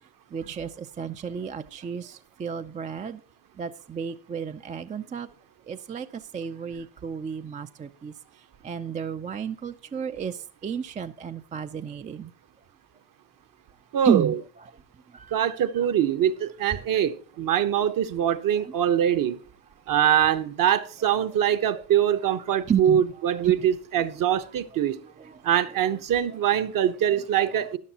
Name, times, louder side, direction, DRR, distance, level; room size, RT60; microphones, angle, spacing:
voice 1, 0.3-3.2 3.6-5.3 5.7-8.1 8.6-12.3 14.0-14.3 15.1-15.4 22.7-23.0 23.4-23.5 24.3-24.4 25.0-25.4 25.9-26.0 27.4-27.6, right 7 dB, 20° right, 0.3 m, -32 dB
voice 2, 13.9-14.4 15.3-19.4 19.9-25.0 25.4-27.8, right 10 dB, 50° right, 0.9 m, -23 dB
13.5 x 9.9 x 2.8 m
supercardioid pair, 95°, 43 cm